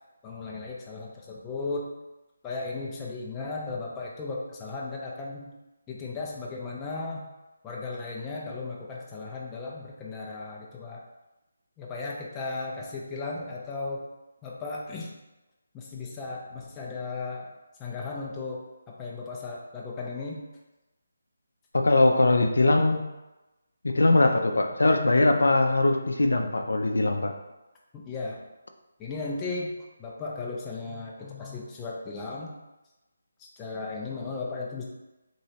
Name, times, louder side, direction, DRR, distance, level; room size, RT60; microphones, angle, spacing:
voice 1, 0.2-1.8 2.4-5.5 5.9-7.2 7.6-11.0 11.8-14.1 14.4-15.1 15.7-17.5 17.8-20.4 27.9-28.4 29.0-29.7 30.0-32.5 33.4-34.8, left 3 dB, 10° left, -3 dB, 0.4 m, -36 dB
voice 2, 21.7-23.0 23.9-27.3, left 2 dB, 90° left, 4 dB, 0.4 m, -21 dB
3.0 x 3.0 x 2.8 m, 1.0 s
figure-of-eight pair, 170°, 0 cm